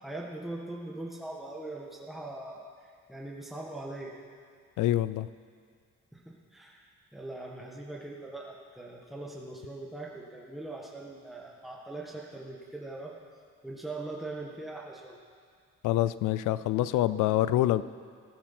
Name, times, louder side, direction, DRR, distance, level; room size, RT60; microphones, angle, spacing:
voice 1, 0.0-2.6 3.1-4.1 6.1-13.1 13.6-15.1, right 2 dB, ahead, -2 dB, 1.6 m, -41 dB
voice 2, 4.8-5.3 15.8-17.8, left 14 dB, 85° left, 16 dB, 0.5 m, -26 dB
14.5 x 11.0 x 5.9 m, 2.1 s
cardioid pair, 90°, 30 cm